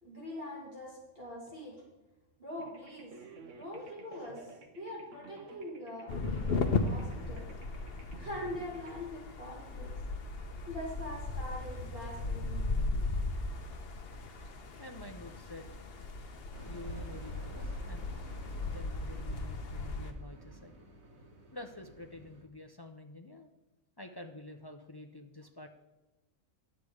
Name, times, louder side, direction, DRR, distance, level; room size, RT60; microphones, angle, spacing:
voice 1, 0.0-1.8 2.4-3.1 3.6-7.5 8.2-10.0 10.7-13.0, left 1 dB, 45° right, -4 dB, 3.0 m, -43 dB
sound 1, 2.6-9.0, right 4 dB, 70° right, 1.3 m, -53 dB
sound 2, 6.1-20.1, left 3 dB, 50° left, 1.0 m, -36 dB
voice 2, 14.8-15.8 16.6-18.1 18.5-20.9 21.5-23.5 24.0-25.7, left 2 dB, 30° left, 5 dB, 0.4 m, -48 dB
sound 3, 16.5-22.4, right 1 dB, 85° right, 1.8 m, -54 dB
10.0 x 8.3 x 4.9 m, 1.1 s
omnidirectional pair, 1.4 m